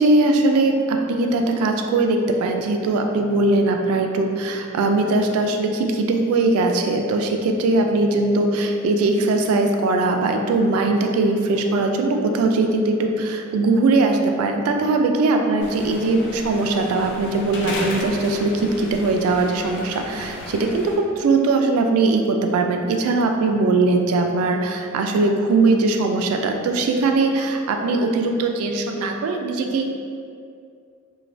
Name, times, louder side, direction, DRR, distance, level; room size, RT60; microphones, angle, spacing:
voice 1, 0.0-29.9, right 3 dB, 85° right, 7 dB, 0.3 m, -20 dB
sound 1, 15.6-21.0, left 1 dB, 55° left, 0.4 m, -34 dB
3.1 x 2.2 x 2.5 m, 2.4 s
head